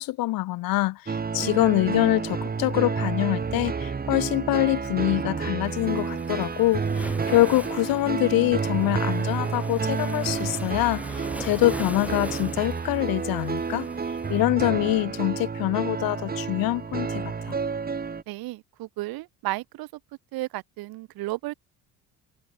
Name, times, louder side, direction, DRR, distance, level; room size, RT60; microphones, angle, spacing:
voice 1, 0.0-13.9 14.3-17.6, left 18 dB, 70° left, 0.8 m, -25 dB
sound 1, 1.1-18.2, right 5 dB, 25° right, 1.4 m, -30 dB
Waves surf, 5.7-14.4, right 1 dB, 5° right, 5.2 m, -42 dB
voice 2, 18.3-19.9 20.3-21.5, right 19 dB, 75° right, 1.2 m, -33 dB
supercardioid pair, 80°, 36 cm